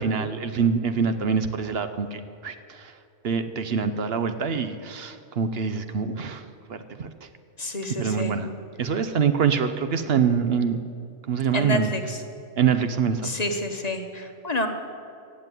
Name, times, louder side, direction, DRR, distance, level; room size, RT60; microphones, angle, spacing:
voice 1, 0.0-2.9 3.2-7.3 8.0-8.5 8.8-10.8 11.3-11.9 12.6-13.3, right 6 dB, 60° right, 10 dB, 0.9 m, -25 dB
voice 2, 7.6-8.4 11.5-12.2 13.2-14.7, left 1 dB, 35° left, 6 dB, 1.1 m, -29 dB
16.0 x 7.7 x 9.1 m, 2.5 s
omnidirectional pair, 1.2 m